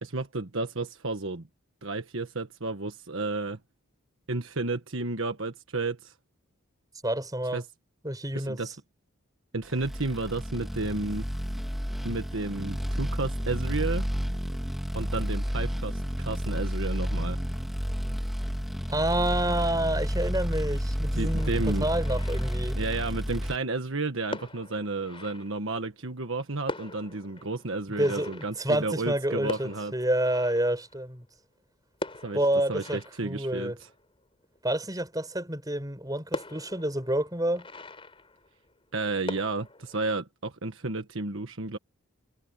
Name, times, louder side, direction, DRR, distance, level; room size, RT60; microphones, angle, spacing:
voice 1, 0.0-1.4 1.8-3.6 4.3-6.1 7.5-7.6 8.3-8.7 9.5-11.2 12.0-14.1 14.9-17.4 21.1-21.8 22.7-29.9 32.2-32.4 32.7-33.7 38.9-41.8, right 3 dB, 65° right, 1.4 m, -32 dB
voice 2, 7.0-7.6 8.0-8.6 18.9-22.8 28.0-31.3 32.3-33.8 34.6-37.7, right 1 dB, 15° right, 6.9 m, -28 dB
sound 1, 9.8-23.6, equal, ahead, 2.6 m, -30 dB
sound 2, 21.3-23.2 23.9-24.0 24.3-26.0 26.4-26.5 26.6-31.4 31.9-34.6 35.1-35.2 35.6-35.7 36.3-38.9 39.2-40.2, left 2 dB, 25° left, 4.5 m, -42 dB
head